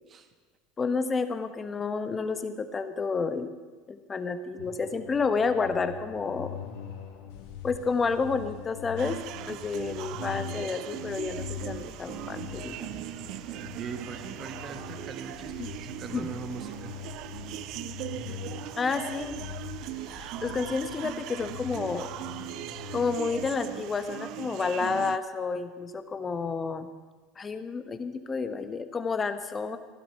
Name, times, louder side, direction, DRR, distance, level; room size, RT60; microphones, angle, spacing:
voice 1, 0.8-3.5 3.9-6.6 7.6-9.2 9.5-12.9 15.6-15.7 16.1-16.3 18.8-19.4 20.2-22.1 22.9-26.9 27.4-29.8, left 4 dB, 25° left, 9 dB, 1.3 m, -30 dB
sound 1, 4.6-23.5, left 9 dB, 75° left, 2.0 m, -43 dB
sound 2, 9.0-25.2, right 15 dB, 60° right, 0.4 m, -39 dB
voice 2, 13.7-16.9, right 6 dB, 40° right, 8 dB, 1.4 m, -40 dB
15.5 x 11.5 x 5.7 m, 1.4 s
hypercardioid pair, 85°, 0 cm